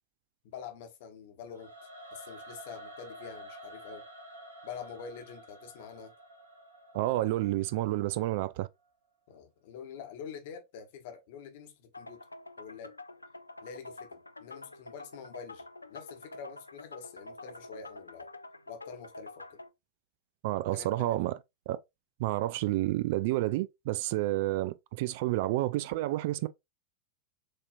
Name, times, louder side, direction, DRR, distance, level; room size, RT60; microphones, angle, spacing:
voice 1, 0.4-4.0 4.6-6.1 9.3-12.2 12.6-12.9 13.6-15.6 15.9-18.3 18.7-19.6 20.7-21.2, left 7 dB, 50° left, 1.1 m, -46 dB
Singing / Musical instrument, 1.5-8.6, right 1 dB, 75° right, 1.0 m, -50 dB
voice 2, 6.9-8.7 20.4-21.3 21.7-21.8 22.2-26.5, right 16 dB, 50° right, 0.3 m, -30 dB
sound 1, 11.9-19.7, left 2 dB, 80° left, 0.3 m, -48 dB
6.4 x 2.8 x 2.4 m
figure-of-eight pair, 90°, 0 cm